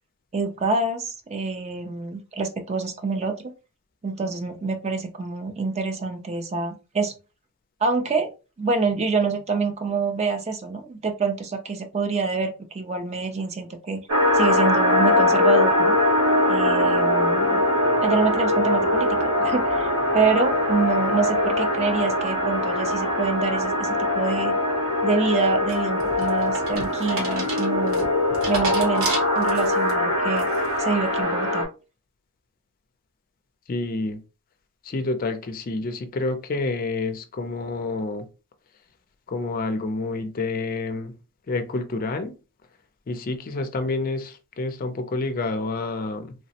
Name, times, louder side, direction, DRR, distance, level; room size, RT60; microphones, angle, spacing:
voice 1, 0.3-3.5 4.0-7.1 7.8-8.3 8.6-14.0 14.3-15.9 16.5-17.6 18.0-24.5 25.0-28.1 28.5-30.5 30.8-31.7, right 4 dB, 30° right, 0.4 m, -26 dB
sound 1, 14.1-31.6, left 1 dB, 80° right, 1.3 m, -22 dB
sound 2, 25.7-29.9 30.4-30.8, right 2 dB, 65° right, 1.1 m, -32 dB
voice 2, 33.7-34.2 34.8-38.3 39.3-41.1 41.5-42.3 43.1-46.3, left 3 dB, 40° left, 0.4 m, -28 dB
3.2 x 2.0 x 2.7 m
head